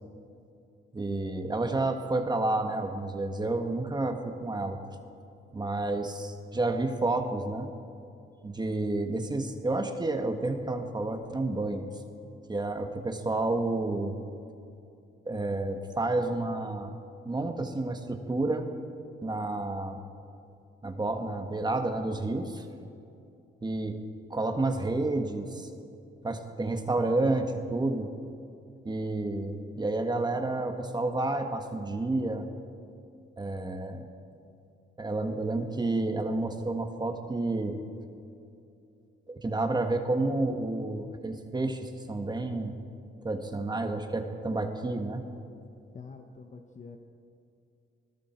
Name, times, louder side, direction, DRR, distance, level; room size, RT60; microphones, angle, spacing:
voice 1, 0.9-4.8 5.5-7.7 8.4-11.9 12.5-14.2 15.3-16.9 17.3-18.7 19.2-20.0 20.8-22.7 23.6-24.0 24.3-25.7 26.2-28.1 28.8-32.5 33.4-34.0 35.0-37.8 39.3-42.7 43.2-45.2, right 2 dB, 20° right, 5 dB, 1.8 m, -30 dB
voice 2, 45.9-47.0, left 4 dB, 35° left, 4 dB, 1.3 m, -46 dB
28.5 x 20.5 x 4.6 m, 2.6 s
cardioid pair, 90°, 20 cm